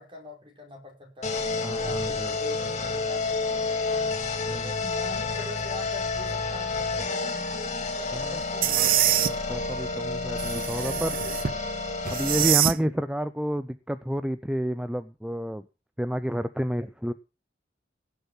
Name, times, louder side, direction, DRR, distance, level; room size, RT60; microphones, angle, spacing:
voice 1, 0.0-1.4 1.8-4.2 4.5-9.1, left 2 dB, 30° right, 2 dB, 5.5 m, -43 dB
sound 1, 1.2-12.5, left 3 dB, 40° left, 2.5 m, -30 dB
voice 2, 1.6-2.3 4.5-4.7 8.1-8.4 8.8-11.2 12.0-15.7 16.0-17.1, equal, 5° right, 12 dB, 0.6 m, -30 dB
sound 2, 8.6-9.3 10.4-11.6 12.1-12.8, right 12 dB, 55° right, 0.6 m, -24 dB
17.0 x 7.0 x 5.7 m, 0.30 s
head